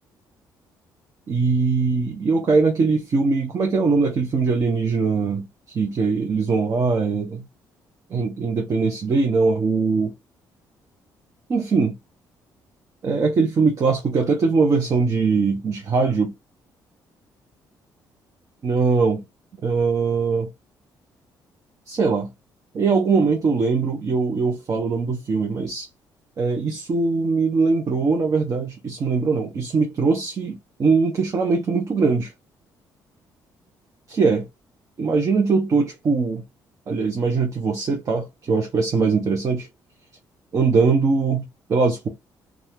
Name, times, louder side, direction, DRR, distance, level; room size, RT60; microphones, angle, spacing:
voice 1, 1.3-5.5 5.7-7.4 8.1-10.1 11.5-11.9 13.0-16.3 18.6-19.2 19.6-20.5 21.9-22.3 22.7-25.9 26.4-32.3 34.1-34.5 35.0-36.4 36.9-39.7 40.5-42.1, right 4 dB, 45° right, 0.8 m, -21 dB
2.6 x 2.3 x 3.3 m
cardioid pair, 90°, 8 cm